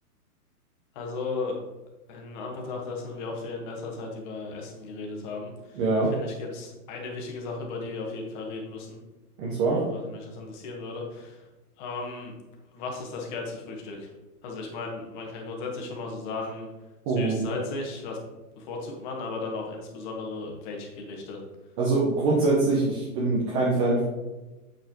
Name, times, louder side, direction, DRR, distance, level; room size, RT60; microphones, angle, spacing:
voice 1, 0.9-1.6 2.1-5.8 6.1-9.0 9.6-11.5 11.8-12.3 12.7-14.1 14.4-16.7 17.2-18.2 18.6-21.4, left 3 dB, 30° left, 0 dB, 1.3 m, -35 dB
voice 2, 5.7-6.1 9.4-9.8 17.1-17.5 21.8-24.1, right 3 dB, 20° right, -4 dB, 0.6 m, -24 dB
7.8 x 4.7 x 3.0 m, 1.1 s
hypercardioid pair, 155°, 46 cm